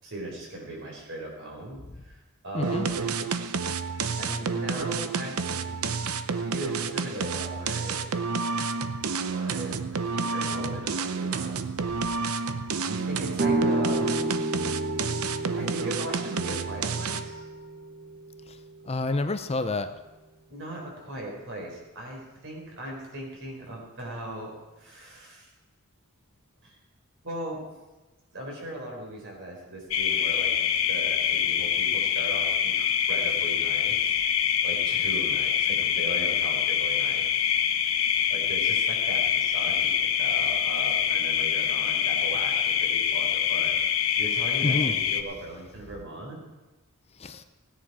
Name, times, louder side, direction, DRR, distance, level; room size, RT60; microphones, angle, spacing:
voice 1, 0.0-3.2 4.2-5.8 6.3-8.0 9.2-11.6 12.8-14.3 15.6-17.5 20.5-25.5 26.6-26.8 27.2-27.6 28.3-34.2 34.6-37.2 37.9-38.0 38.3-43.8 44.2-46.4, right 1 dB, 60° right, -1 dB, 4.3 m, -38 dB
voice 2, 2.5-2.9 18.9-19.9 44.6-44.9 47.2-47.4, left 2 dB, 30° left, 9 dB, 0.6 m, -28 dB
sound 1, 2.6-17.4, right 5 dB, 85° right, 0.7 m, -30 dB
sound 2, 13.4-19.1, right 2 dB, 45° right, 1.7 m, -30 dB
sound 3, 29.9-45.2, left 8 dB, 70° left, 0.9 m, -25 dB
16.5 x 10.0 x 4.8 m, 1.1 s
head